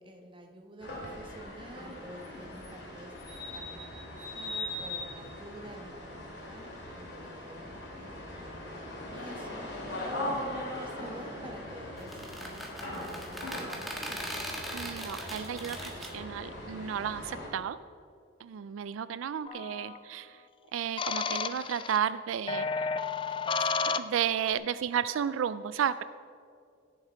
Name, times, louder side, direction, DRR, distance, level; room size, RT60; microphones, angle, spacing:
voice 1, 0.0-3.2 3.5-9.7 10.0-14.3, right 1 dB, 25° right, 3 dB, 1.2 m, -48 dB
sound 1, 0.8-17.5, left 1 dB, 60° left, 2.7 m, -40 dB
sound 2, 12.0-16.1, equal, ahead, 1.5 m, -40 dB
voice 2, 14.7-17.8 18.4-20.4 20.7-22.9 23.6-26.0, right 8 dB, 90° right, 15 dB, 0.3 m, -33 dB
sound 3, 19.5-20.0 21.0-22.0 22.5-24.5, left 5 dB, 25° left, 0.4 m, -32 dB
16.5 x 7.2 x 4.5 m, 2.4 s
head